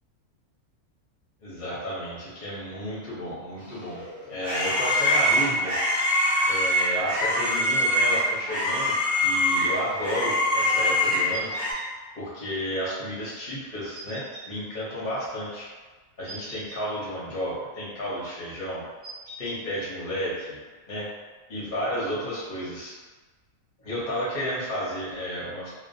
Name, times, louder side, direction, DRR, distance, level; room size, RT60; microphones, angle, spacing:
voice 1, 1.4-4.0 4.3-5.7 6.5-8.9 9.2-11.5 12.2-15.7 16.2-18.8 19.4-20.6 20.9-21.1 21.5-22.9 23.8-25.7, equal, 45° left, -8 dB, 0.7 m, -32 dB
sound 1, 3.8-11.7, left 1 dB, 35° right, 0.9 m, -24 dB
sound 2, 11.3-11.9 13.9-14.5 16.3-16.8 19.0-19.6, right 1 dB, 60° right, 0.8 m, -42 dB
2.4 x 2.2 x 2.6 m, 1.3 s
omnidirectional pair, 1.6 m